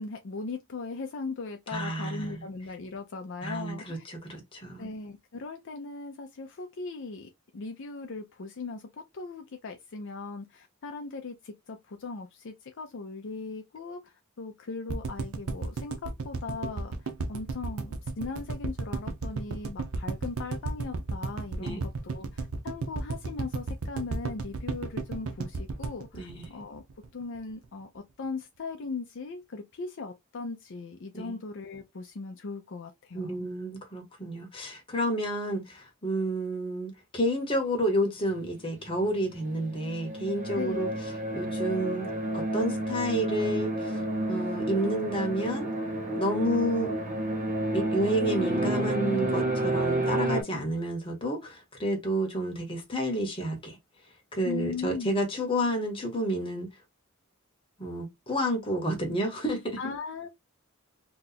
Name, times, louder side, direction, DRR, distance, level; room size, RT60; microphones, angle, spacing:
voice 1, 0.0-4.0 4.8-8.9 9.1-16.9 17.3-26.8 27.1-33.3 40.5-41.0 54.4-55.2 59.8-60.3, left 3 dB, 60° left, 0.5 m, -39 dB
voice 2, 1.7-2.5 3.4-4.9 21.6-21.8 26.1-26.4 31.1-31.4 33.1-40.9 41.3-42.1 42.3-44.0 44.3-45.7 46.1-46.9 47.7-53.8 54.3-56.7 57.8-59.8, equal, 25° left, 1.0 m, -30 dB
sound 1, 14.9-27.0 27.3-27.4 27.6-27.7, right 3 dB, 80° right, 0.6 m, -33 dB
sound 2, 39.2-50.4, right 1 dB, 35° right, 0.8 m, -30 dB
2.8 x 2.4 x 3.9 m
head